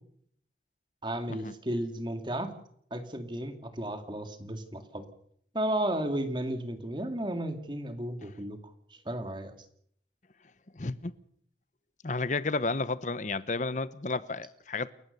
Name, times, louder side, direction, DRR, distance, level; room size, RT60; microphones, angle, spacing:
voice 1, 1.0-2.5 2.9-5.1 5.5-8.6 9.1-9.5, right 1 dB, 25° right, 2.3 m, -33 dB
voice 2, 10.7-11.1 12.0-14.9, left 3 dB, 45° left, 0.9 m, -32 dB
29.5 x 14.5 x 6.7 m
head